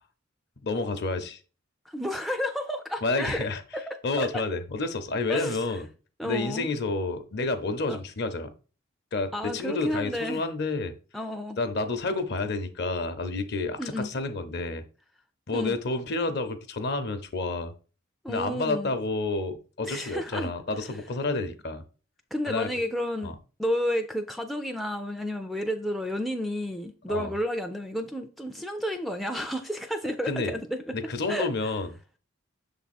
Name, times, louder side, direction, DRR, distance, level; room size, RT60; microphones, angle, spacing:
voice 1, 0.6-1.4 3.0-3.6 4.0-5.9 6.2-8.5 9.1-10.9 11.6-14.8 15.5-17.7 18.3-21.8 22.5-22.7 23.2-23.3 27.1-27.3 30.2-30.5 30.9-31.9, left 3 dB, 50° left, 0.7 m, -29 dB
voice 2, 1.9-3.5 3.7-4.3 5.3-5.8 6.2-6.7 7.9-8.0 9.3-10.4 11.1-11.6 13.8-14.1 15.5-15.8 18.2-19.0 19.8-20.5 20.9-21.0 22.3-23.3 23.6-30.9 31.3-31.5, equal, ahead, 0.3 m, -31 dB
6.6 x 3.5 x 4.2 m
head